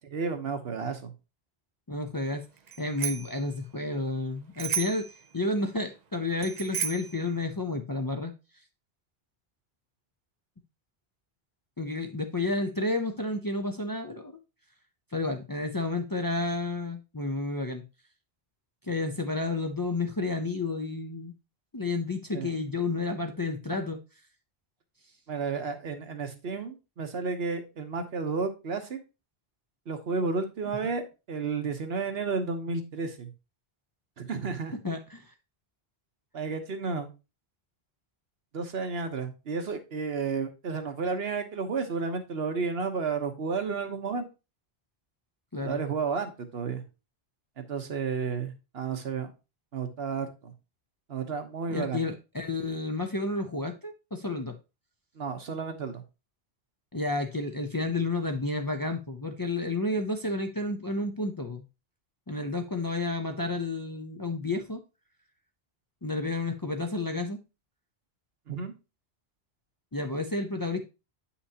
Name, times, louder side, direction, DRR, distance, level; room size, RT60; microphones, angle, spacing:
voice 1, 0.0-1.1 22.3-22.5 25.3-29.0 29.9-31.0 31.3-33.3 34.2-34.7 36.3-37.1 38.5-44.2 45.6-46.8 47.6-49.3 49.7-50.5 51.1-52.0 55.2-56.0 68.5-68.7, right 5 dB, 75° right, 1.2 m, -32 dB
voice 2, 1.9-2.4 2.8-5.1 5.3-8.3 11.8-14.4 15.1-17.8 18.8-21.3 21.7-24.0 34.8-35.3 45.5-45.8 51.7-54.5 56.9-61.6 62.3-64.8 66.0-67.4 69.9-70.8, left 2 dB, 25° left, 0.5 m, -31 dB
Bicycle bell, 2.7-3.4 4.6-5.1 6.4-7.2, right 7 dB, 50° right, 0.7 m, -33 dB
8.5 x 5.7 x 2.8 m
omnidirectional pair, 1.0 m